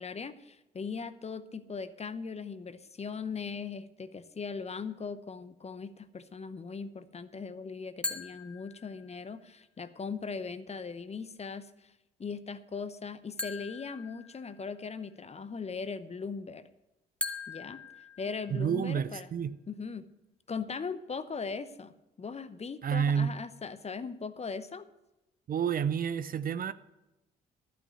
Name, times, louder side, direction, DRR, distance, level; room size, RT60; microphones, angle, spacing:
voice 1, 0.0-11.9 12.2-16.6 17.5-17.8 18.2-19.3 19.7-20.1 20.5-24.9, left 5 dB, 30° left, 0.8 m, -39 dB
sound 1, 8.0-9.3 13.4-14.9 17.2-18.9, left 2 dB, 5° left, 1.4 m, -40 dB
voice 2, 18.5-19.5 22.8-23.4 25.5-26.7, right 7 dB, 45° right, 0.5 m, -29 dB
12.0 x 5.9 x 8.2 m
hypercardioid pair, 45°, 21 cm